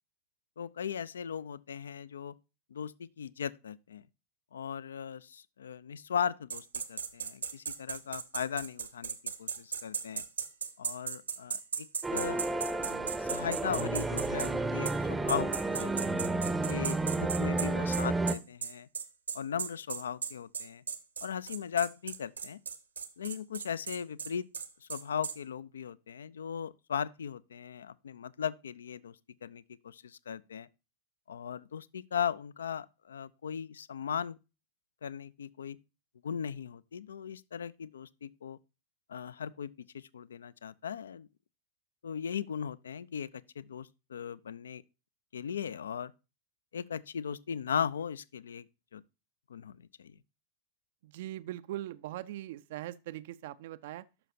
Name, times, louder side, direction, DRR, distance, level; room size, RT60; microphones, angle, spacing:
voice 1, 0.6-2.3 2.7-4.0 4.5-10.2 10.8-11.9 12.1-12.4 12.8-15.9 16.7-18.9 19.3-20.8 21.2-22.6 23.2-24.5 24.8-29.2 29.4-30.7 31.3-34.4 35.0-35.8 36.2-38.6 39.1-41.3 42.0-44.8 45.3-46.1 46.7-48.7 48.9-49.0 49.5-50.1, left 8 dB, 65° left, 0.3 m, -38 dB
sound 1, 6.5-14.5 14.8-15.0 15.3-25.4, right 6 dB, 70° right, 0.7 m, -36 dB
sound 2, 12.0-18.4, right 2 dB, 10° right, 0.6 m, -31 dB
voice 2, 51.0-54.1, right 14 dB, 55° right, 0.3 m, -41 dB
12.0 x 5.7 x 2.6 m
figure-of-eight pair, 90°, 0 cm